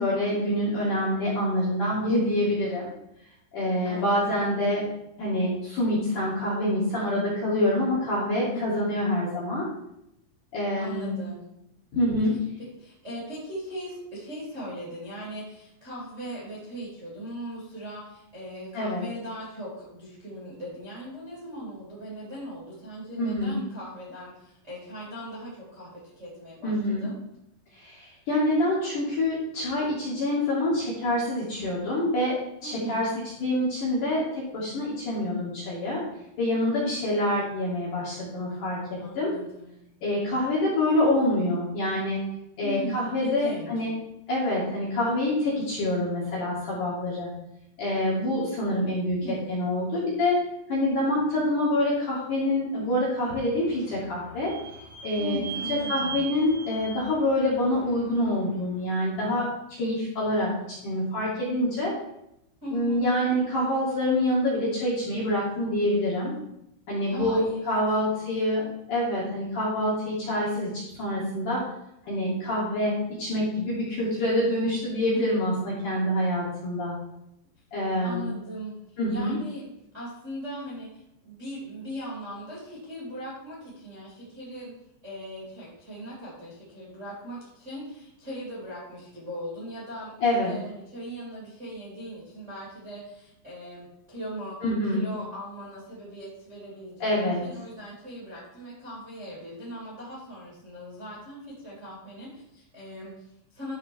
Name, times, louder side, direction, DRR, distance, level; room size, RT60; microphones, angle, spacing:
voice 1, 0.0-2.9 3.5-4.8 5.2-9.6 10.5-11.2 11.9-12.3 18.7-19.0 23.2-23.6 26.6-27.1 27.8-32.4 32.6-33.1 33.4-36.0 36.4-39.3 40.0-42.2 42.6-43.9 44.3-47.3 47.8-49.2 49.5-50.4 50.7-54.5 55.0-55.4 55.7-60.5 60.8-61.9 62.7-66.3 66.9-71.6 72.0-76.9 77.7-78.3 79.0-79.4 90.2-90.5 94.6-95.1 97.0-97.4, left 1 dB, 50° left, -7 dB, 2.7 m, -26 dB
voice 2, 3.8-4.5 8.5-8.9 10.7-11.5 12.8-27.1 32.6-33.1 39.0-39.9 42.6-43.8 49.2-49.7 55.2-56.2 62.6-63.1 67.1-68.3 75.1-75.3 78.0-78.7 79.1-84.7 85.0-94.6 94.9-103.7, equal, 20° right, -6 dB, 1.9 m, -39 dB
Vehicle / Squeak, 53.0-58.6, right 7 dB, 70° right, 3.8 m, -40 dB
12.0 x 4.4 x 4.6 m, 0.81 s
omnidirectional pair, 6.0 m